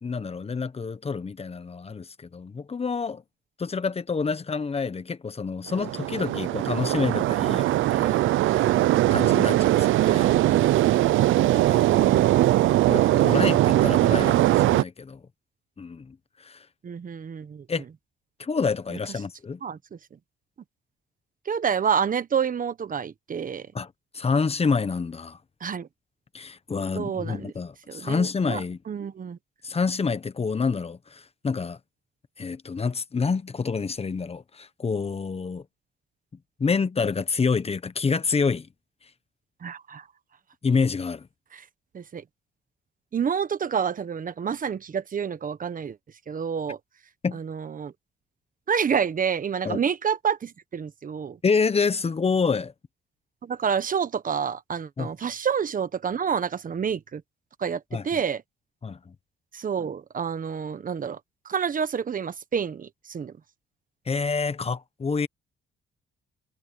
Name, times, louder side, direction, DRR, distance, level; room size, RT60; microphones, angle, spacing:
voice 1, 0.0-3.2 3.6-8.8 9.1-10.3 11.5-11.8 12.9-15.2 15.8-16.1 16.4-16.6 17.7-17.8 18.4-19.6 23.7-25.4 26.3-28.8 29.6-31.8 32.4-35.6 36.6-38.7 40.6-41.3 47.2-47.4 49.6-49.8 51.4-52.7 55.0-55.1 57.9-58.2 58.8-59.1 64.1-65.3, left 5 dB, 30° left, 1.2 m, -28 dB
sound 1, 5.7-14.8, right 15 dB, 85° right, 0.7 m, -20 dB
voice 2, 11.9-12.6 16.8-17.7 19.6-19.8 21.4-23.7 25.6-25.9 26.9-27.5 27.9-28.6 28.9-29.4 39.6-40.0 41.5-41.6 41.9-42.2 43.1-46.0 46.3-46.8 47.3-47.9 48.7-51.4 53.4-57.2 57.6-58.4 59.5-61.2 61.4-63.3, right 7 dB, 45° right, 1.3 m, -28 dB
cardioid pair, 90°, 20 cm